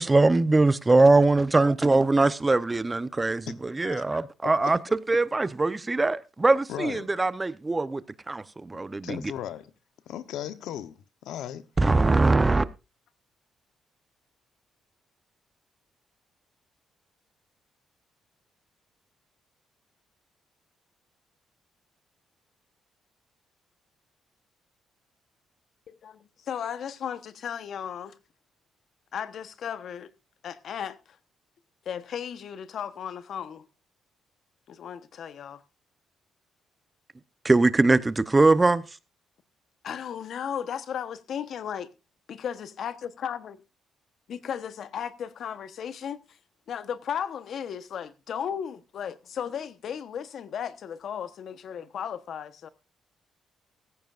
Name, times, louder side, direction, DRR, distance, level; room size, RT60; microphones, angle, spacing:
voice 1, 0.0-4.8 5.1-8.0 8.3-9.2 11.8-12.6 37.4-38.8, right 3 dB, 20° right, 0.8 m, -22 dB
voice 2, 3.5-4.2 4.6-4.7 6.7-7.1 8.7-9.7 10.1-11.6, left 11 dB, 80° left, 0.9 m, -37 dB
voice 3, 25.9-28.1 29.1-30.1 30.4-31.0 31.8-33.6 34.7-35.6 39.8-41.9 42.3-43.6 44.3-46.4 46.7-52.7, left 8 dB, 65° left, 1.1 m, -35 dB
16.5 x 14.5 x 2.5 m
cardioid pair, 85°, 0 cm